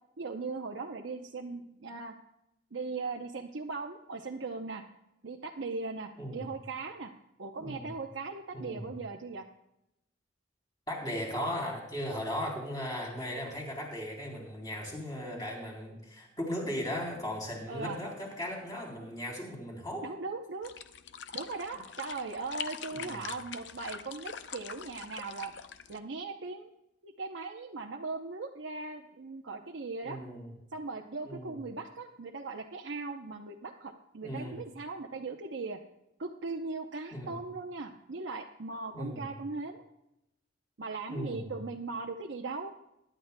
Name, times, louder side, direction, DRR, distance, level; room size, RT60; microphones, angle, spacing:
voice 1, 0.2-2.1 2.7-4.8 5.2-7.1 7.4-9.4 17.7-18.0 20.0-20.7 21.3-25.5 25.9-26.7 27.0-30.2 30.7-35.8 36.2-39.8 40.8-42.7, right 3 dB, 75° right, 1 dB, 0.7 m, -39 dB
voice 2, 6.2-6.5 7.6-7.9 8.5-8.9 10.9-20.0 22.9-23.2 30.0-30.5 31.2-31.6 34.2-34.5 37.1-37.3 38.9-39.3 41.1-41.5, equal, 20° left, -2 dB, 3.5 m, -37 dB
sound 1, 20.6-26.0, left 7 dB, 65° left, 0.6 m, -43 dB
22.0 x 11.0 x 2.2 m, 0.87 s
head